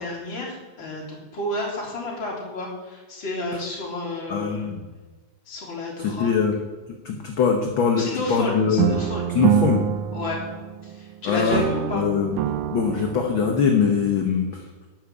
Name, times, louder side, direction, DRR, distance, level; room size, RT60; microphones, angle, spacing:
voice 1, 0.0-4.7 5.5-6.4 8.0-9.3 10.1-10.4 10.8-12.0, left 1 dB, 40° left, -4 dB, 4.0 m, -31 dB
voice 2, 4.3-4.8 6.0-6.5 6.9-9.0 9.3-9.8 11.2-11.6 11.9-12.3 12.7-14.9, left 6 dB, 65° left, 2 dB, 1.3 m, -22 dB
sound 1, 8.8-11.1 11.5-13.8, right 11 dB, 90° right, 2.1 m, -26 dB
11.5 x 6.2 x 8.2 m, 1.2 s
omnidirectional pair, 3.4 m